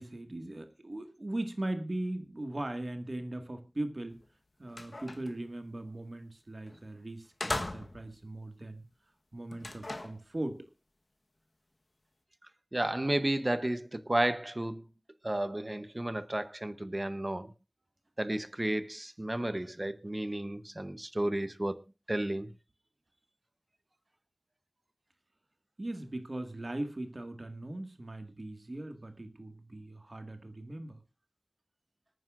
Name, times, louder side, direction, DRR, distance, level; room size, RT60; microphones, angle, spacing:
voice 1, 0.0-4.2 4.6-8.8 9.3-10.6 25.8-31.0, right 1 dB, 65° right, 1.7 m, -39 dB
sound 1, 4.1-4.2 4.6-5.4 6.7-6.8 7.4-8.2 9.5-10.2, left 2 dB, 75° left, 1.1 m, -38 dB
voice 2, 12.7-14.8 15.2-17.5 18.2-21.8 22.1-22.5, right 1 dB, 40° right, 0.8 m, -32 dB
26.0 x 9.3 x 2.4 m
wide cardioid pair, 45°, 0 cm